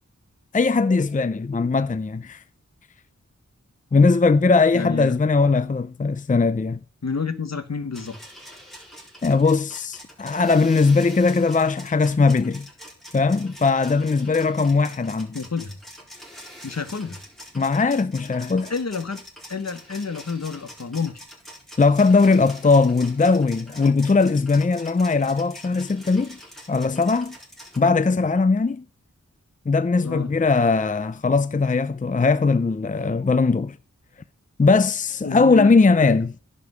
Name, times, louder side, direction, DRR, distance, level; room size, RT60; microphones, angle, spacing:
voice 1, 0.5-2.4 3.9-6.8 9.2-12.7 13.1-15.4 17.5-18.7 21.8-26.4 26.7-27.4 27.8-28.8 29.7-33.8 34.6-36.3, left 4 dB, 25° left, 0.5 m, -19 dB
voice 2, 4.7-5.1 7.0-8.2 15.3-15.7 16.6-17.2 18.7-19.2 19.5-21.2 30.0-30.3 35.2-35.7 36.0-36.2, left 5 dB, 60° left, 1.5 m, -29 dB
sound 1, 7.9-27.8, equal, ahead, 4.3 m, -44 dB
10.5 x 5.2 x 8.0 m
wide cardioid pair, 60°, 30 cm